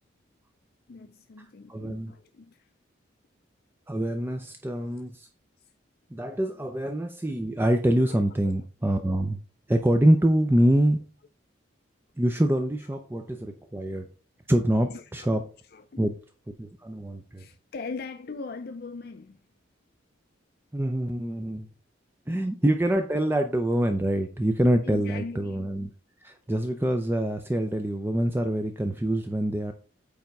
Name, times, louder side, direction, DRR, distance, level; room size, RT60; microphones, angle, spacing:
voice 1, 0.9-2.7 8.1-8.2 14.9-15.4 15.7-16.0 17.4-19.4 22.3-22.4 24.8-25.7, left 4 dB, 50° left, 0.5 m, -40 dB
voice 2, 1.7-2.1 3.9-5.3 6.1-9.4 9.7-11.0 12.2-14.1 14.5-15.4 16.0-16.1 16.5-17.5 20.7-21.7 22.3-25.9 26.2-29.7, right 1 dB, 10° right, 0.5 m, -25 dB
8.9 x 3.6 x 5.3 m
head